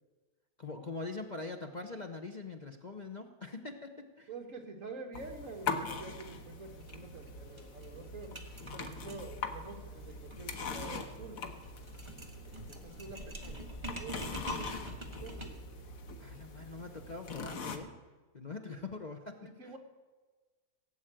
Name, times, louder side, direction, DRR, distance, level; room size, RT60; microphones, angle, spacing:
voice 1, 0.6-4.3 16.2-17.9 18.3-19.7, left 3 dB, 35° left, 4 dB, 0.9 m, -43 dB
voice 2, 4.3-8.4 8.7-11.4 12.5-15.4 18.7-18.8 19.4-19.8, right 3 dB, 55° right, 4 dB, 1.9 m, -47 dB
sound 1, 5.1-17.8, left 4 dB, 65° left, 1.6 m, -42 dB
sound 2, 6.8-6.9 7.2-7.3 7.6-15.7, right 1 dB, 20° right, 1.5 m, -46 dB
17.0 x 8.1 x 9.0 m, 1.3 s
omnidirectional pair, 1.6 m